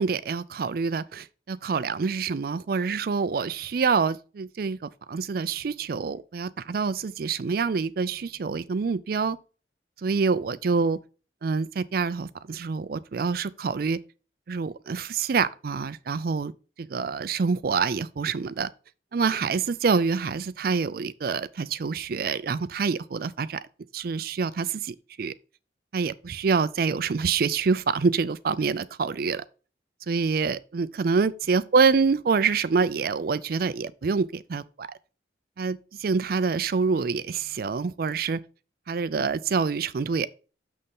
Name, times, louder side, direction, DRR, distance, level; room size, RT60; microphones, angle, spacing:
voice 1, 0.0-9.4 10.0-11.0 11.4-14.0 14.5-16.5 16.8-18.7 19.1-23.6 23.9-25.3 25.9-29.4 30.1-34.9 35.6-38.4 38.9-40.3, right 5 dB, 55° right, 0.4 m, -26 dB
6.6 x 6.3 x 3.6 m
head